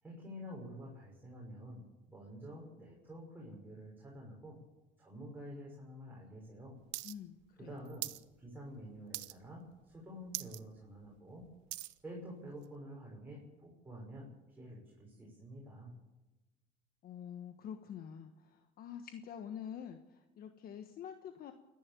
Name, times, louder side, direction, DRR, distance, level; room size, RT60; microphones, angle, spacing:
voice 1, 0.0-4.6 5.0-6.8 7.6-8.1 8.4-11.5 12.0-15.9, equal, 10° right, -4 dB, 6.4 m, -49 dB
sound 1, 6.9-7.1 7.4-8.2 8.6-8.8 9.1-9.6 9.9-10.0 10.3-10.6 11.0-12.0 12.6-12.7, right 20 dB, 75° right, 0.8 m, -42 dB
voice 2, 7.0-7.7 17.0-21.5, left 8 dB, 55° left, 7 dB, 1.4 m, -47 dB
28.0 x 11.0 x 8.5 m, 1.1 s
cardioid pair, 110°, 19 cm